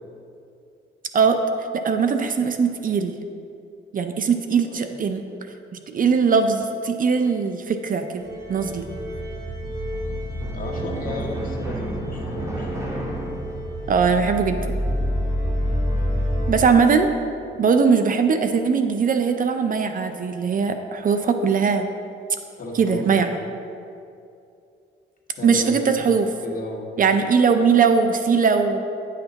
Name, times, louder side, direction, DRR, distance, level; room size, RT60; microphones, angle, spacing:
voice 1, 1.7-3.1 3.9-5.2 5.9-8.9 13.9-14.6 16.5-17.1 17.6-21.9 22.7-23.3 25.4-26.3 27.0-28.8, right 5 dB, 45° right, 7 dB, 0.5 m, -20 dB
sound 1, 8.2-16.6, equal, 15° right, 1.6 m, -27 dB
voice 2, 10.5-12.7 22.6-23.1 25.4-25.9 26.4-26.9, left 2 dB, 45° left, -1 dB, 1.6 m, -34 dB
10.0 x 5.8 x 4.0 m, 2.6 s
cardioid pair, 90°, 20 cm